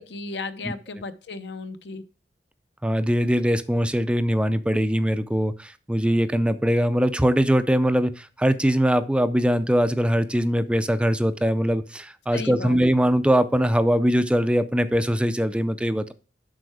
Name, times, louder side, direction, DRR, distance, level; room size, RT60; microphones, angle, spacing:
voice 1, 0.0-2.0 12.3-12.8, left 3 dB, 70° left, 10 dB, 0.9 m, -35 dB
voice 2, 2.8-16.1, equal, 5° right, 12 dB, 0.4 m, -22 dB
7.8 x 5.6 x 4.8 m, 0.36 s
head